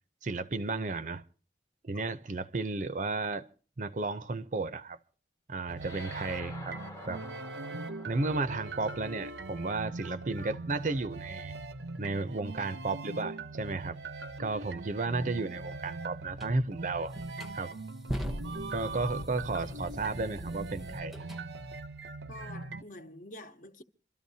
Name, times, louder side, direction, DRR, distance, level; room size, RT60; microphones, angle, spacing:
voice 1, 0.2-1.2 1.8-3.5 3.8-5.0 5.5-6.8 7.1-7.3 7.8-11.5 12.0-14.0 14.4-17.1 17.5-17.7 18.7-21.1, right 3 dB, 45° right, 0.6 m, -33 dB
sound 1, 5.7-22.8, right 3 dB, 85° right, 0.8 m, -41 dB
sound 2, 5.8-10.5, left 2 dB, 20° left, 0.9 m, -50 dB
sound 3, 16.4-16.5 17.1-21.4, equal, ahead, 0.8 m, -40 dB
voice 2, 22.3-23.8, left 1 dB, 45° left, 1.1 m, -47 dB
26.5 x 13.0 x 2.8 m
head